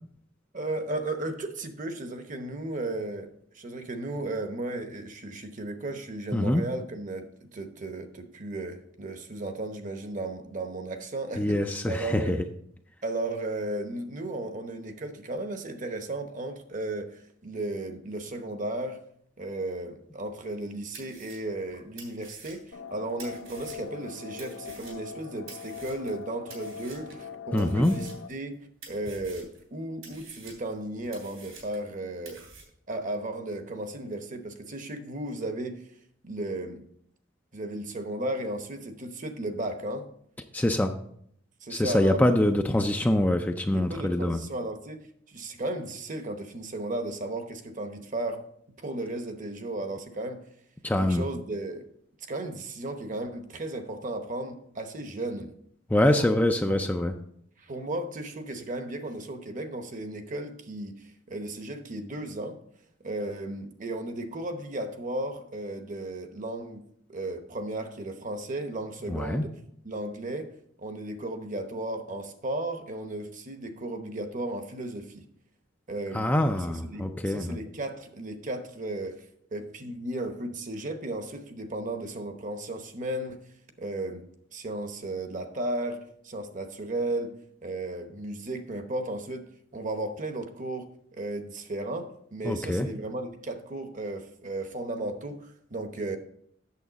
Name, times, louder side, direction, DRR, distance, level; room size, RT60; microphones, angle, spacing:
voice 1, 0.5-3.3 3.5-11.6 11.9-12.4 13.0-19.0 19.4-28.6 28.9-32.4 32.9-35.9 36.2-36.8 37.5-40.1 41.6-42.4 43.7-48.4 48.8-50.4 51.0-51.8 52.3-55.5 56.1-56.5 57.6-62.6 63.0-69.5 69.8-75.2 75.9-76.3 76.7-79.2 79.5-83.4 83.8-96.2, right 2 dB, 40° right, 7 dB, 0.9 m, -35 dB
voice 2, 6.3-6.6 11.3-12.4 27.5-27.9 40.5-41.0 41.7-44.4 50.8-51.3 55.9-57.1 69.1-69.5 76.1-77.6 92.4-92.9, left 1 dB, 10° left, 5 dB, 0.4 m, -24 dB
sound 1, 20.4-20.5 20.9-24.0 24.4-26.2 26.5-27.2 27.6-28.5 28.8-29.6 30.0-31.9 32.3-32.6, right 5 dB, 80° right, 3.0 m, -49 dB
sound 2, 22.7-28.3, left 5 dB, 80° left, 0.8 m, -42 dB
8.6 x 7.0 x 4.0 m, 0.68 s
head